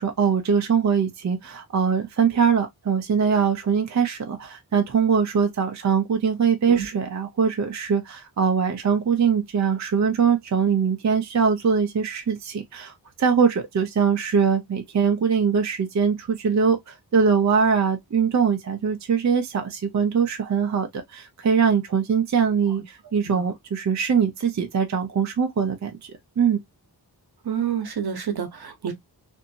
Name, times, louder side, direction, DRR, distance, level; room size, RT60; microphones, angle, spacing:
voice 1, 0.0-26.6, right 6 dB, 45° right, 0.5 m, -22 dB
voice 2, 27.4-28.9, right 8 dB, 65° right, 0.9 m, -28 dB
2.6 x 2.6 x 2.6 m
wide cardioid pair, 105°, 40 cm